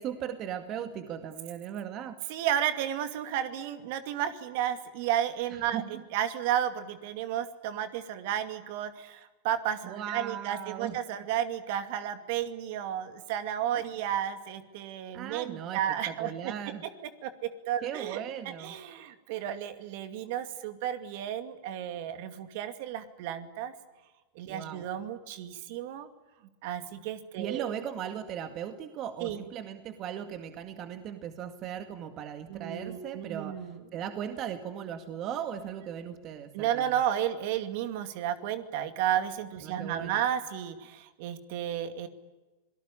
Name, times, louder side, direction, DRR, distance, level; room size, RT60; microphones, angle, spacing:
voice 1, 0.0-2.2 5.7-6.0 9.8-11.0 15.1-16.8 17.8-18.8 24.5-24.9 27.4-37.0 39.6-40.2, right 9 dB, 40° right, 8 dB, 2.0 m, -38 dB
voice 2, 2.3-5.8 6.1-16.5 17.2-18.2 18.6-23.7 24.3-26.1 26.6-27.7 29.2-29.4 32.5-33.8 36.5-42.1, right 10 dB, 60° right, 9 dB, 2.3 m, -32 dB
26.0 x 18.5 x 10.0 m, 1.2 s
hypercardioid pair, 100°, 0 cm